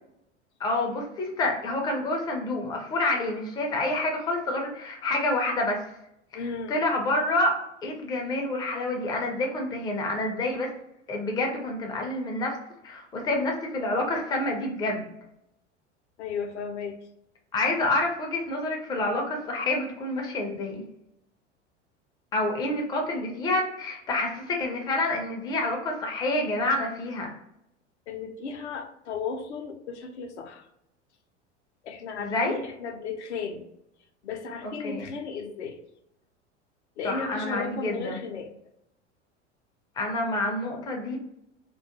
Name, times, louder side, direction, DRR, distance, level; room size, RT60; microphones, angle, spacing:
voice 1, 0.6-5.9 6.3-7.5 7.8-10.7 11.1-12.6 12.8-15.1 17.5-20.8 22.3-27.3 32.2-32.6 34.6-35.1 37.0-38.2 40.0-41.2, left 2 dB, 10° left, 1 dB, 0.4 m, -28 dB
voice 2, 6.3-6.8 16.2-17.0 28.1-30.6 31.8-33.6 34.2-35.8 37.0-38.5, left 5 dB, 70° left, 5 dB, 0.5 m, -35 dB
2.3 x 2.2 x 2.7 m, 0.81 s
figure-of-eight pair, 80°, 36 cm